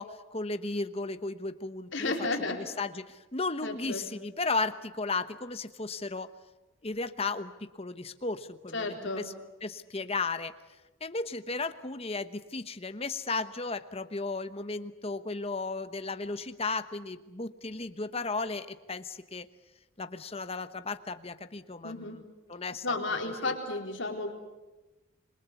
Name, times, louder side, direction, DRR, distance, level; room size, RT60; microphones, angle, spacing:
voice 1, 0.0-6.3 6.8-9.3 9.6-10.5 11.0-19.4 20.0-23.6, left 3 dB, 30° left, 11 dB, 1.0 m, -35 dB
voice 2, 1.9-2.6 3.6-4.0 8.7-9.3 21.8-22.2 22.8-24.3, left 2 dB, 60° left, 2 dB, 4.2 m, -32 dB
27.5 x 22.0 x 8.4 m, 1.1 s
head